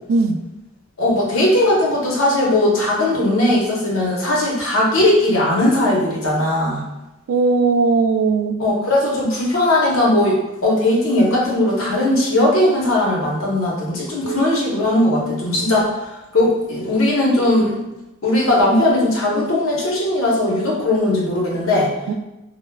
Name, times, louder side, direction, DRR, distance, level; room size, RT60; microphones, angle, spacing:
voice 1, 1.0-6.8 8.6-16.0 16.3-17.8 18.2-21.9, left 1 dB, 80° left, -3 dB, 0.8 m, -18 dB
voice 2, 7.3-8.6 14.2-14.4 22.1-22.2, right 4 dB, 85° right, 6 dB, 0.3 m, -18 dB
3.2 x 2.1 x 2.2 m, 0.96 s
head